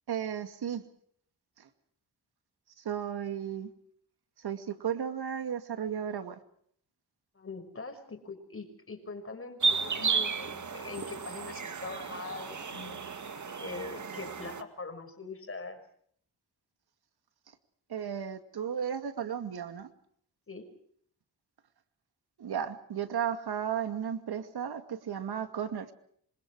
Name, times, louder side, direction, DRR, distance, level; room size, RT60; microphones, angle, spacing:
voice 1, 0.1-0.8 1.6-1.7 2.8-3.7 4.4-6.4 17.9-19.9 22.4-25.9, right 8 dB, 80° right, 9 dB, 2.4 m, -34 dB
voice 2, 7.3-13.0 13.6-15.8 20.5-20.7, left 4 dB, 35° left, 7 dB, 6.3 m, -42 dB
sound 1, 9.6-14.6, right 5 dB, 50° right, 2.2 m, -33 dB
26.5 x 26.0 x 4.9 m, 0.64 s
wide cardioid pair, 105°, 38 cm